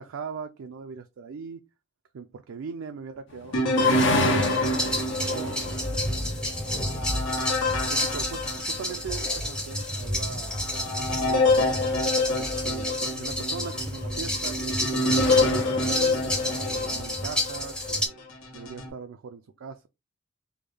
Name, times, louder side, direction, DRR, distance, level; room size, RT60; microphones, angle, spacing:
voice 1, 0.0-1.6 2.1-5.7 6.4-7.3 7.8-10.6 11.3-11.6 12.4-16.2 16.7-18.3 18.5-19.9, right 5 dB, 75° right, 0.4 m, -41 dB
sound 1, 3.3-17.1, left 3 dB, 55° left, 0.6 m, -35 dB
sound 2, 3.5-9.3 9.8-9.9 10.5-17.7 18.3-18.9, left 2 dB, 85° left, 1.3 m, -27 dB
sound 3, 4.0-18.1, left 1 dB, 5° left, 0.6 m, -30 dB
3.5 x 2.3 x 3.3 m
head